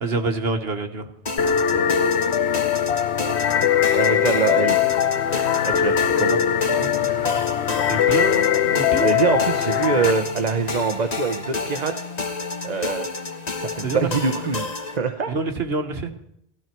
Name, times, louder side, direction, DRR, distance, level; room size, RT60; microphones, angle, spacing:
voice 1, 0.0-1.1 6.8-7.4 7.9-9.1 13.8-14.1 15.3-16.1, right 3 dB, 65° right, 7 dB, 1.6 m, -27 dB
sound 1, 1.3-15.0, left 3 dB, 40° left, 1.3 m, -30 dB
sound 2, 1.4-10.1, left 9 dB, 90° left, 1.0 m, -21 dB
voice 2, 3.9-4.8 5.6-6.4 9.0-11.9 12.6-13.1 13.6-15.3, right 5 dB, 40° right, 7 dB, 1.0 m, -24 dB
18.5 x 13.5 x 4.6 m, 0.73 s
omnidirectional pair, 1.1 m